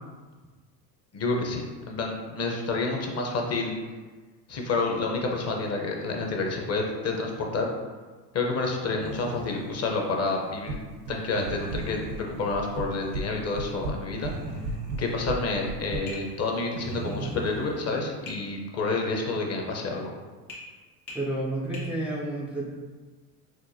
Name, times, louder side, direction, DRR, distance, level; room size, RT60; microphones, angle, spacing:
voice 1, 1.1-3.7 4.5-7.7 8.3-10.8 11.1-14.3 15.0-20.1, left 3 dB, 30° left, 1 dB, 0.7 m, -29 dB
sound 1, 9.0-17.8, right 2 dB, 75° right, 1.2 m, -41 dB
sound 2, 10.7-11.2 11.4-12.2 12.5-13.3 13.5-16.0, right 3 dB, 55° right, 0.7 m, -34 dB
Tap, 16.1-16.3 18.3-18.4 20.5-20.7 21.1-21.3 21.7-21.9, left 2 dB, 85° left, 1.4 m, -40 dB
voice 2, 21.1-22.6, right 1 dB, 5° right, -6 dB, 0.4 m, -30 dB
6.0 x 2.1 x 2.7 m, 1.3 s
hypercardioid pair, 85°, 50 cm